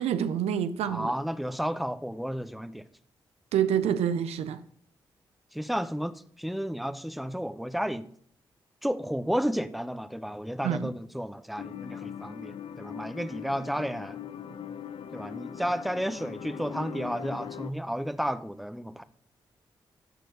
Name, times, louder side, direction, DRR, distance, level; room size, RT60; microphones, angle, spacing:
voice 1, 0.0-1.1 3.5-4.6 10.6-10.9, right 9 dB, 80° right, 0.5 m, -27 dB
voice 2, 0.9-2.8 5.5-8.1 8.8-14.2 15.1-19.0, equal, ahead, 0.9 m, -32 dB
sound 1, 11.6-17.7, left 9 dB, 60° left, 0.5 m, -40 dB
12.0 x 4.5 x 6.5 m
supercardioid pair, 40°, 10 cm